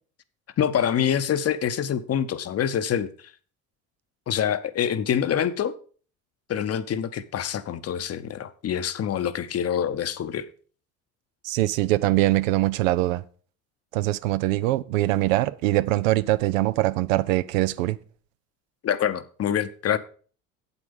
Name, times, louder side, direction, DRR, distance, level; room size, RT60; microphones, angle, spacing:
voice 1, 0.6-3.1 4.3-5.7 6.5-10.5 18.8-20.0, left 9 dB, 35° left, 0.9 m, -26 dB
voice 2, 11.4-13.2 13.9-18.0, right 17 dB, 70° right, 0.6 m, -23 dB
8.3 x 8.1 x 5.4 m
hypercardioid pair, 70°, 42 cm